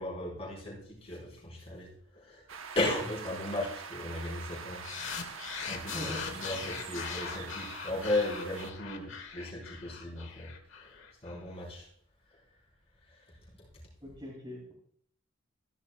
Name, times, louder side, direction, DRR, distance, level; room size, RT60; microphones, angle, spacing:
voice 1, 0.0-2.4 2.7-4.8 5.7-11.9 12.3-12.4 13.1-13.4, left 1 dB, 30° left, -4 dB, 4.4 m, -36 dB
sound 1, 2.5-8.7, right 6 dB, 75° right, 1.0 m, -45 dB
sound 2, 4.8-11.4, left 6 dB, 65° left, 1.4 m, -41 dB
voice 2, 5.8-6.2 6.5-6.6 14.0-14.7, left 1 dB, 25° right, -6 dB, 2.9 m, -42 dB
15.0 x 11.0 x 2.3 m, 0.63 s
head